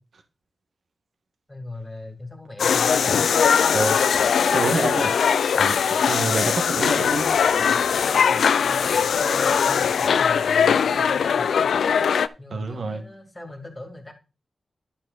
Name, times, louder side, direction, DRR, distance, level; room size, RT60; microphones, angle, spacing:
voice 1, 1.5-3.3 6.2-6.6 7.6-11.8 12.4-14.1, left 2 dB, 15° left, 4 dB, 2.5 m, -38 dB
sound 1, 2.6-12.3, left 7 dB, 85° left, 0.5 m, -20 dB
voice 2, 4.5-5.1 5.6-5.8 6.0-7.2 12.5-13.0, right 3 dB, 60° right, 6 dB, 1.6 m, -27 dB
11.5 x 6.1 x 4.1 m, 0.31 s
wide cardioid pair, 125°, 0 cm